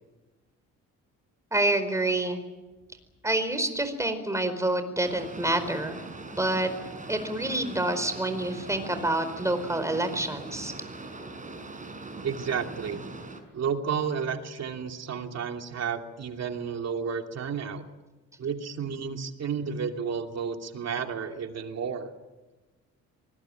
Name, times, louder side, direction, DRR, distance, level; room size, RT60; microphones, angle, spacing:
voice 1, 1.5-2.4 3.2-6.0 6.3-6.7 7.1-10.7, right 1 dB, 10° right, 9 dB, 4.6 m, -27 dB
Boat Water vehicle, 5.0-13.4, right 3 dB, 25° right, 5.8 m, -41 dB
voice 2, 12.2-13.0 13.5-17.8 18.4-22.1, right 6 dB, 60° right, 4 dB, 2.8 m, -32 dB
24.5 x 20.0 x 9.1 m, 1.2 s
cardioid pair, 90°, 30 cm